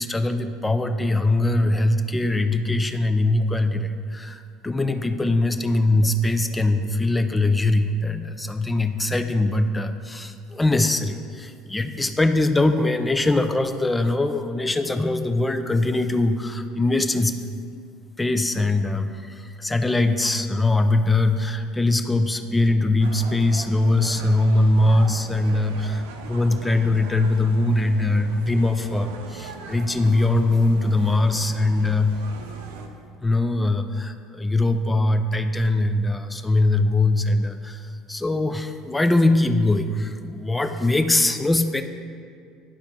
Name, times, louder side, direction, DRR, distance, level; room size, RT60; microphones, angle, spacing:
voice 1, 0.0-17.4 18.2-26.0 26.3-32.1 33.2-37.8 38.1-41.8, left 2 dB, 15° left, 8 dB, 0.5 m, -22 dB
sound 1, 23.0-32.9, right 4 dB, 70° right, 0.6 m, -40 dB
10.5 x 4.5 x 3.6 m, 2.2 s
hypercardioid pair, 65°, 0 cm